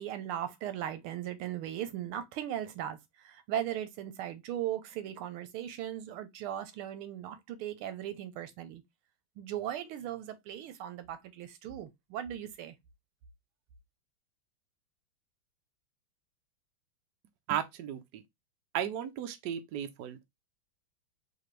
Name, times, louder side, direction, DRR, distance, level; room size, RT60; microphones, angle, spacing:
voice 1, 0.0-8.8 9.4-12.7, right 11 dB, 85° right, 1.6 m, -38 dB
voice 2, 17.5-18.2 18.7-20.4, right 10 dB, 70° right, 1.0 m, -35 dB
4.2 x 2.8 x 3.1 m
omnidirectional pair, 2.3 m